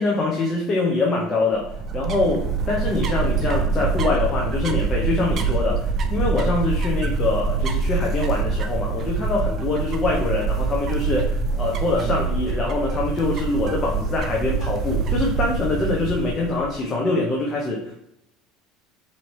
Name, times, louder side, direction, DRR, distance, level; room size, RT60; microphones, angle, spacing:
voice 1, 0.0-1.7 1.9-17.9, left 3 dB, 30° left, -2 dB, 0.7 m, -24 dB
sound 1, 1.5-16.8, right 4 dB, 45° right, 0.5 m, -25 dB
4.3 x 2.8 x 3.2 m, 0.81 s
supercardioid pair, 100°, 0 cm